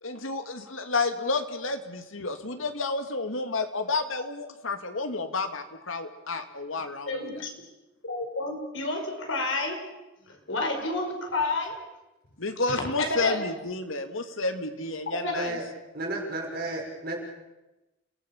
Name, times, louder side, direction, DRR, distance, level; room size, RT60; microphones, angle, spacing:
voice 1, 0.0-7.4 12.4-15.6, left 3 dB, 90° left, 7 dB, 2.3 m, -31 dB
voice 2, 7.1-7.4 8.0-9.8 10.3-11.8 12.7-13.4 15.2-15.3, left 2 dB, 75° left, 3 dB, 5.3 m, -30 dB
voice 3, 15.9-17.2, right 2 dB, 50° right, 0 dB, 6.2 m, -32 dB
30.0 x 18.0 x 7.2 m, 1.0 s
head